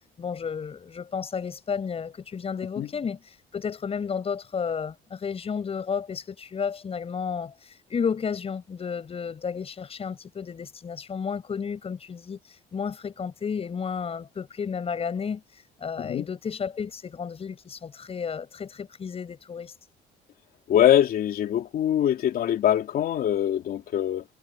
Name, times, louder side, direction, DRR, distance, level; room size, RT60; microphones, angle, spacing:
voice 1, 0.2-19.7, left 6 dB, 35° left, 6.8 m, -32 dB
voice 2, 20.7-24.2, left 11 dB, 60° left, 3.3 m, -23 dB
cardioid pair, 110°, 17 cm